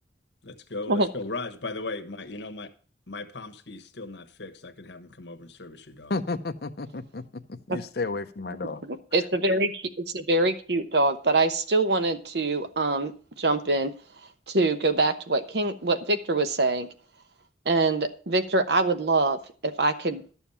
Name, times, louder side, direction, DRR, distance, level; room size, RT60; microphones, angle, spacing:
voice 1, 0.4-2.7 3.1-6.1, left 3 dB, 75° left, 1.3 m, -37 dB
voice 2, 6.1-8.8, left 3 dB, 55° left, 0.6 m, -32 dB
voice 3, 9.1-13.1 13.4-13.9 14.5-16.9 17.7-20.2, right 2 dB, 65° right, 1.0 m, -24 dB
12.5 x 7.2 x 5.6 m
head